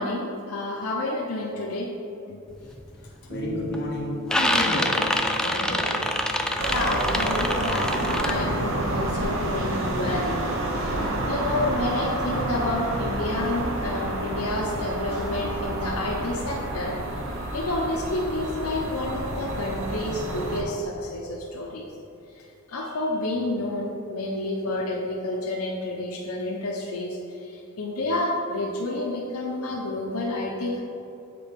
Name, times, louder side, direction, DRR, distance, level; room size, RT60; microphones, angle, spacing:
voice 1, 0.0-1.9 2.3-2.4 6.7-10.4 10.7-16.9 17.5-21.9 22.7-30.8, left 2 dB, 90° left, -2 dB, 0.7 m, -29 dB
sound 1, 2.6-2.8 3.3-3.8 4.0-8.3, left 1 dB, 5° left, 0.3 m, -26 dB
voice 2, 2.9-6.1, equal, 50° left, -4 dB, 1.5 m, -32 dB
Bass guitar, 3.3-7.7, left 2 dB, 20° right, 1.0 m, -38 dB
sound 2, 6.6-20.6, right 1 dB, 65° right, 0.8 m, -29 dB
6.9 x 4.1 x 5.1 m, 2.7 s
head